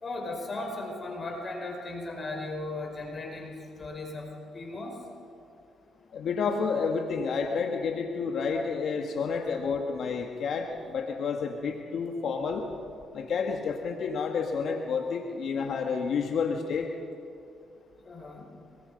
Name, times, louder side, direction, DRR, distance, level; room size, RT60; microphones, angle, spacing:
voice 1, 0.0-5.0 18.0-18.4, left 2 dB, 35° left, 1 dB, 5.0 m, -37 dB
voice 2, 6.1-12.7 13.1-16.9, left 5 dB, 65° left, 3 dB, 1.8 m, -30 dB
28.0 x 22.5 x 5.4 m, 2.5 s
cardioid pair, 90°, 0 cm